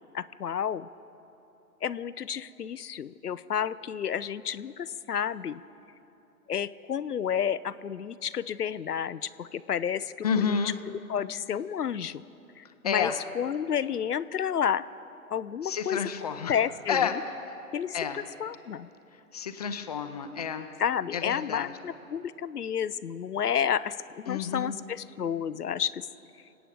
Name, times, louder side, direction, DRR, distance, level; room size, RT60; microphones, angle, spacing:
voice 1, 0.1-0.9 1.8-5.6 6.5-10.6 10.9-12.2 12.6-14.8 15.3-16.0 16.5-17.0 17.7-18.0 18.4-18.9 20.8-26.1, left 8 dB, 85° left, 16 dB, 0.6 m, -31 dB
voice 2, 10.2-10.8 12.8-13.2 15.6-16.5 16.9-17.1 17.4-17.5 17.9-18.2 19.1-20.7 21.1-21.8 24.3-24.7, left 7 dB, 25° left, 8 dB, 0.6 m, -30 dB
26.0 x 8.9 x 5.0 m, 2.9 s
figure-of-eight pair, 135°, 45 cm